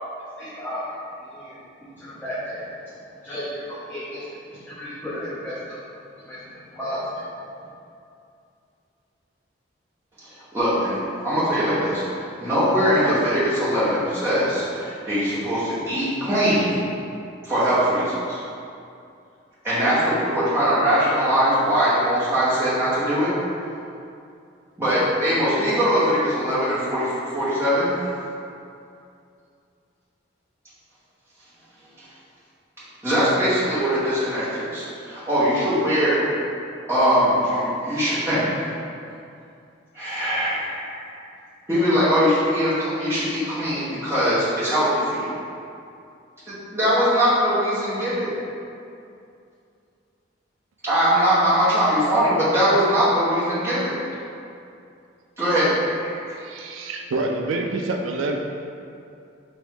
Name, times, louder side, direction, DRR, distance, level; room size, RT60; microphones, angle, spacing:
voice 1, 0.4-0.8 1.2-5.8 6.2-7.7, equal, 10° left, -12 dB, 0.6 m, -34 dB
voice 2, 10.5-16.8 17.4-18.4 19.6-23.3 24.8-27.9 33.0-36.3 36.9-38.6 39.9-41.0 41.7-45.3 46.7-48.3 50.8-53.9 55.4-56.3, equal, 15° right, -12 dB, 1.1 m, -21 dB
voice 3, 56.4-58.4, right 2 dB, 80° right, 3 dB, 0.3 m, -27 dB
3.5 x 3.0 x 3.6 m, 2.5 s
head